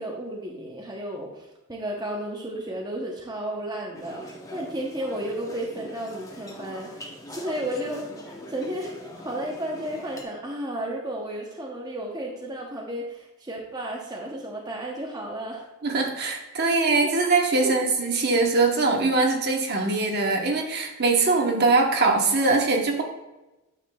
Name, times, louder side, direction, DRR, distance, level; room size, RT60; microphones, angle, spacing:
voice 1, 0.0-8.9 9.2-15.7 16.5-16.7 17.0-17.1 17.5-17.7, right 1 dB, 20° right, -2 dB, 0.8 m, -33 dB
sound 1, 3.9-10.2, equal, 15° left, 0.8 m, -42 dB
voice 2, 15.8-23.0, right 3 dB, 50° right, 2 dB, 1.0 m, -22 dB
9.1 x 6.4 x 2.3 m, 1.0 s
head